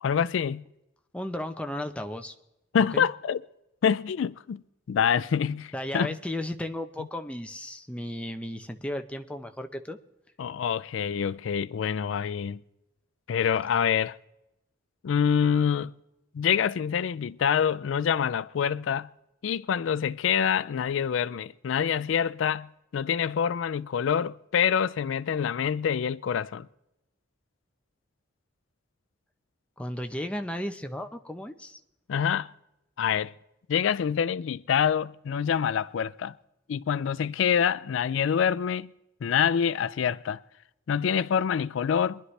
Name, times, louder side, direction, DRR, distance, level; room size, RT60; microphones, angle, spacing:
voice 1, 0.0-0.6 2.7-3.4 3.8-4.6 4.9-6.1 10.4-12.6 13.3-14.2 15.0-15.9 16.3-19.1 19.4-22.7 22.9-26.7 32.1-32.5 33.0-33.3 33.7-36.3 36.7-38.9 39.2-40.4 40.9-42.2, left 7 dB, 80° left, 0.4 m, -26 dB
voice 2, 1.1-2.3 2.9-3.1 5.7-10.0 29.8-31.8, left 1 dB, 5° left, 0.7 m, -34 dB
22.5 x 11.0 x 3.2 m
head